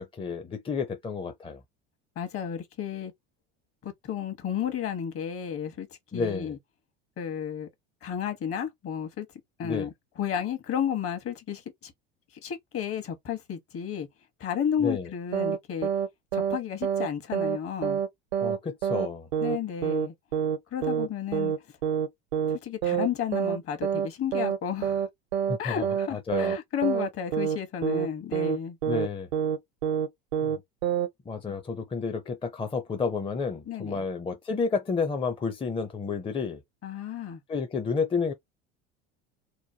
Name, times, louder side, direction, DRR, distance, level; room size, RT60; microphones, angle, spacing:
voice 1, 0.0-1.6 6.1-6.6 9.6-9.9 14.8-15.1 18.4-19.3 25.5-25.9 26.1-26.5 28.9-29.3 30.4-30.5 31.3-36.6 37.5-38.3, left 5 dB, 15° left, 0.6 m, -30 dB
voice 2, 2.2-3.1 3.8-5.9 6.1-6.6 7.2-7.7 8.0-9.3 9.6-9.9 10.2-11.9 12.4-14.1 14.4-15.9 16.3-18.0 19.4-20.1 20.7-21.5 22.5-25.1 25.6-28.8 31.5-31.6 33.7-34.0 36.8-37.4, left 8 dB, 45° left, 1.2 m, -32 dB
sound 1, 15.3-15.6 15.8-16.1 16.3-16.6 16.8-17.1 17.3-17.6 17.8-18.1 18.3-18.6 18.8-19.1 19.3-19.6 19.8-20.1 20.3-20.6 20.8-21.1 21.3-21.6 21.8-22.1 22.3-22.6 22.8-23.1 23.3-23.6 23.8-24.1 24.3-24.6 24.8-25.1 25.3-25.6 25.8-26.1 26.3-26.6 26.8-27.1 27.3-27.6 27.8-28.1 28.3-28.6 28.8-29.1 29.3-29.6 29.8-30.1 30.3-30.6 30.8-31.1, right 8 dB, 80° right, 0.7 m, -27 dB
3.0 x 2.1 x 2.7 m
hypercardioid pair, 85°, 32 cm